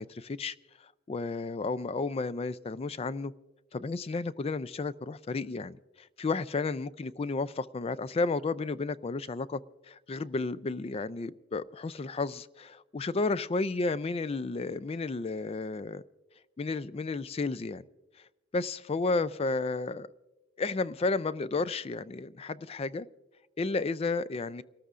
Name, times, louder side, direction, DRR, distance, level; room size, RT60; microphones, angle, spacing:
voice 1, 0.0-3.3 3.7-16.0 16.6-17.8 18.2-18.3 18.5-20.1 20.6-23.1 23.6-24.6, left 3 dB, 30° left, 0.4 m, -32 dB
29.5 x 13.5 x 2.5 m
head